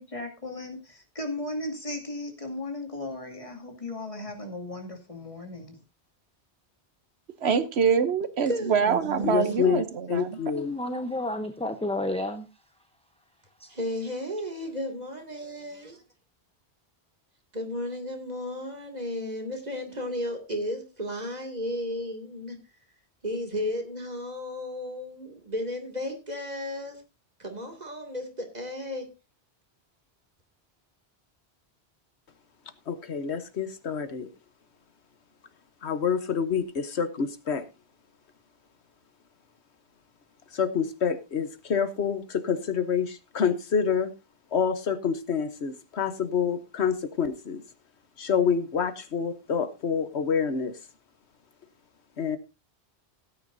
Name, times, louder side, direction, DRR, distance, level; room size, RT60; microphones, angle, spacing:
voice 1, 0.0-5.8, left 2 dB, 30° left, 2.5 m, -36 dB
voice 2, 7.4-10.4, right 6 dB, 70° right, 1.1 m, -25 dB
voice 3, 8.5-9.8 13.7-16.0 17.5-22.6 23.2-27.0 27.4-29.1, left 1 dB, 40° right, 2.6 m, -34 dB
voice 4, 9.2-9.8 10.1-10.7 32.9-34.3 35.8-37.6 40.5-44.1 44.5-47.6 48.2-50.8 52.2-52.4, left 6 dB, 75° left, 1.4 m, -27 dB
voice 5, 10.5-12.5 13.6-13.7, left 1 dB, 5° left, 0.7 m, -30 dB
17.0 x 9.5 x 2.7 m
omnidirectional pair, 1.1 m